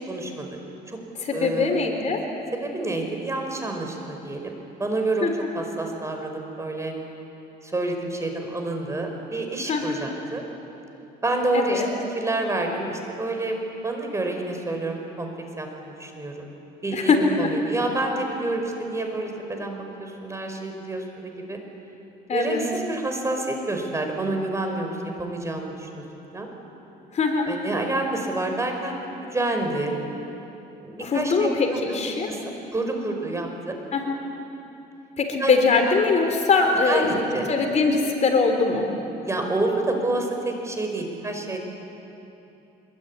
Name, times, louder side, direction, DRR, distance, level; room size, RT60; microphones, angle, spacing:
voice 1, 0.1-0.5 0.9-1.0 1.3-1.8 2.6-5.3 5.5-6.9 7.6-10.4 11.2-11.8 12.1-13.5 13.8-15.3 15.6-16.4 16.8-21.6 22.3-26.0 26.3-26.5 27.5-30.0 30.8-31.5 32.3-32.4 32.7-33.8 35.4-35.5 35.9-36.0 36.9-37.5 39.2-41.6, right 2 dB, 15° right, 3 dB, 5.1 m, -28 dB
voice 2, 1.3-2.2 5.2-5.3 9.7-10.0 11.5-11.9 16.9-17.2 22.3-22.6 27.1-27.5 31.0-32.3 33.9-34.2 35.2-38.9, left 4 dB, 45° left, 4 dB, 3.7 m, -22 dB
25.0 x 23.0 x 9.8 m, 2.9 s
cardioid pair, 110°, 17 cm